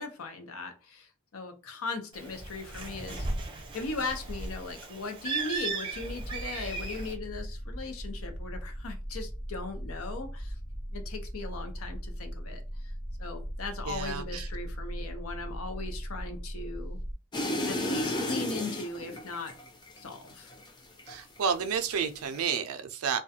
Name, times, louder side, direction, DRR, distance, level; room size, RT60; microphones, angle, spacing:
voice 1, 0.0-3.3 3.7-10.5 10.9-12.9 13.2-17.0 17.6-19.6 20.0-20.5, left 3 dB, 75° left, 0.6 m, -38 dB
Bird, 2.1-7.1, right 3 dB, 25° right, 0.6 m, -36 dB
sound 1, 5.9-17.1, equal, 40° left, 0.9 m, -39 dB
voice 2, 13.9-14.5 21.1-23.2, right 6 dB, 80° right, 0.4 m, -31 dB
sound 2, 17.3-21.5 21.8-22.4, left 1 dB, 20° left, 0.4 m, -33 dB
2.4 x 2.2 x 2.7 m
head